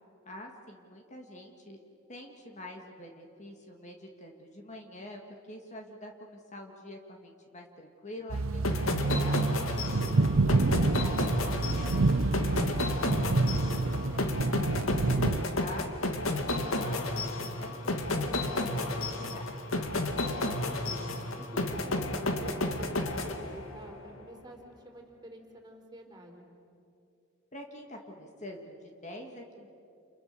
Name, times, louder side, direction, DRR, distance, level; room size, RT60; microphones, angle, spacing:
voice 1, 0.3-1.8 2.1-5.2 5.5-9.6 10.4-13.1 13.6-17.0 17.6-19.5 27.5-29.7, left 1 dB, 35° left, 2 dB, 2.1 m, -46 dB
sound 1, 8.3-15.4, right 3 dB, 75° right, 0.7 m, -28 dB
sound 2, 8.6-23.9, left 2 dB, 85° left, 2.2 m, -32 dB
voice 2, 20.2-26.5, right 1 dB, 20° right, 2 dB, 4.1 m, -49 dB
30.0 x 29.5 x 6.8 m, 2.6 s
head